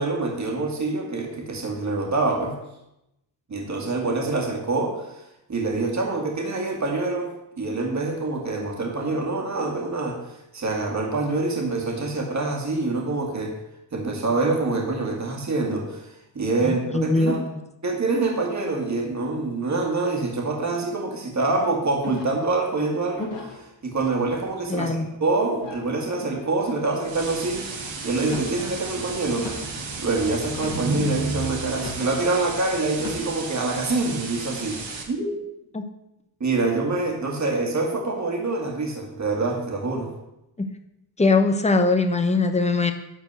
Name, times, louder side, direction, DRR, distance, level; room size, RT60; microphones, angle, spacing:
voice 1, 0.0-2.6 3.5-13.6 13.9-17.4 17.8-29.7 30.0-34.8 35.1-35.3 36.4-40.1, right 3 dB, 40° right, 1 dB, 1.9 m, -26 dB
voice 2, 16.6-17.4 24.7-25.1 35.7-35.8 40.6-40.7 41.2-42.9, left 3 dB, 15° left, 6 dB, 0.8 m, -21 dB
sound 1, 22.0-22.5 23.1-23.6 24.3-24.8 25.5-25.9 26.6-27.0 28.1-28.6 29.4-29.8 30.5-31.0 31.7-32.1 32.9-33.3, left 4 dB, 75° left, 2.5 m, -37 dB
sound 2, 26.9-35.0, right 4 dB, 85° right, 2.0 m, -35 dB
sound 3, 27.1-33.3, right 2 dB, 55° right, 2.1 m, -35 dB
11.0 x 4.4 x 8.0 m, 0.87 s
wide cardioid pair, 160°, 45 cm